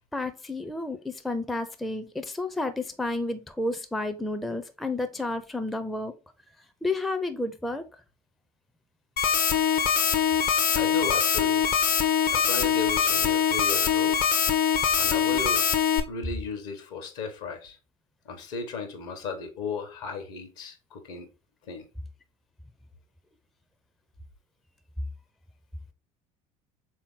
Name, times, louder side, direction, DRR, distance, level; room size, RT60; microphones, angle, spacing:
voice 1, 0.1-6.1 6.8-7.8, left 2 dB, ahead, 0.4 m, -31 dB
sound 1, 9.2-16.0, left 7 dB, 50° left, 0.6 m, -23 dB
voice 2, 10.7-11.7 12.3-14.2 15.0-15.7 16.1-17.8 18.2-21.3 21.7-21.8, left 4 dB, 65° left, 1.0 m, -35 dB
3.6 x 2.8 x 3.5 m
figure-of-eight pair, 65°, 19 cm